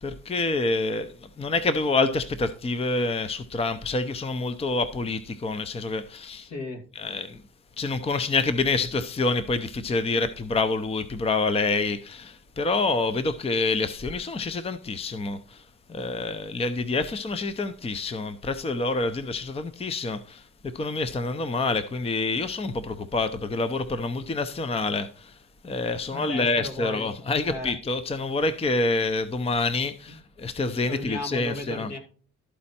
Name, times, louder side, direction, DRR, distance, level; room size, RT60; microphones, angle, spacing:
voice 1, 0.0-6.5 6.9-7.4 7.8-15.6 15.9-20.5 20.7-25.4 25.6-31.9, left 3 dB, 20° left, 0.6 m, -27 dB
voice 2, 6.4-6.8 26.0-27.0 27.4-27.7 30.9-32.0, left 2 dB, 65° left, 2.5 m, -35 dB
12.5 x 4.3 x 4.2 m
cardioid pair, 90°, 30 cm